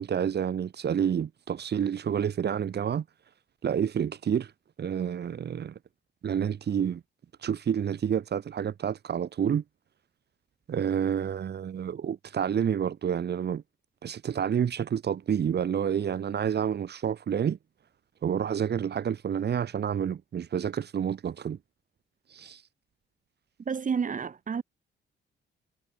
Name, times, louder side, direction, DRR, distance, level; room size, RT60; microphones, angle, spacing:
voice 1, 0.0-3.0 3.6-4.5 4.8-5.7 6.2-7.0 7.4-9.6 10.7-13.6 14.0-17.6 18.2-21.6 22.3-22.6, right 8 dB, 55° right, 6.2 m, -29 dB
voice 2, 23.7-24.6, right 6 dB, 40° right, 3.4 m, -30 dB
cardioid pair, 90°, 20 cm